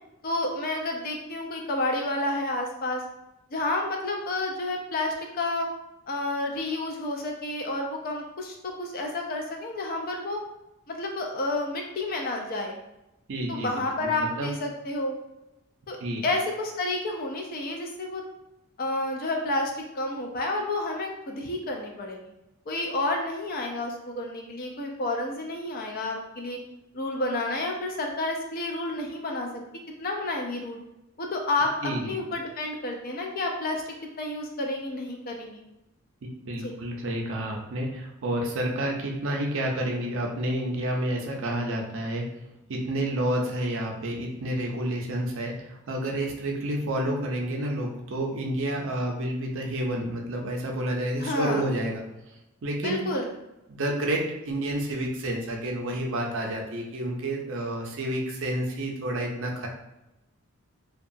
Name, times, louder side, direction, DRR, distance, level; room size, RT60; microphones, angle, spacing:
voice 1, 0.2-3.0 3.5-5.7 6.1-10.4 10.9-12.8 13.5-15.2 15.9-18.2 18.8-22.3 22.7-26.6 26.9-29.6 30.0-30.8 31.2-35.6 36.6-36.7 51.2-51.6 52.8-53.3, left 2 dB, 40° left, 2 dB, 0.4 m, -30 dB
voice 2, 13.3-14.5 16.0-16.2 31.8-32.2 36.5-42.3 42.7-52.0 52.6-53.0 53.7-59.7, right 1 dB, 60° right, 1 dB, 0.5 m, -29 dB
2.8 x 2.2 x 2.6 m, 0.92 s
head